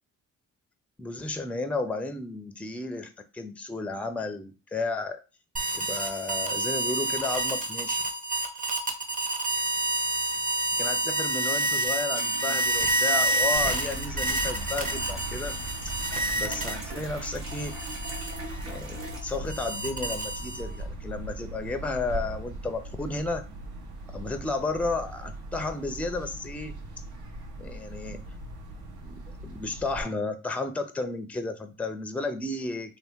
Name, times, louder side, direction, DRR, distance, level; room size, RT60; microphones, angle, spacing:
voice 1, 1.0-5.2 5.7-8.0 10.8-15.6 15.8-16.0 16.3-17.8 18.6-23.4 24.1-26.8 27.6-28.2 29.0-33.0, left 3 dB, 5° left, 8 dB, 0.4 m, -33 dB
sound 1, 5.6-17.0 17.5-20.8, right 2 dB, 25° right, 0.8 m, -28 dB
sound 2, 12.1-19.2, right 2 dB, 45° right, 1.2 m, -43 dB
sound 3, 13.5-30.0, right 1 dB, 75° right, 1.1 m, -39 dB
2.8 x 2.6 x 3.5 m, 0.31 s
cardioid pair, 90°, 30 cm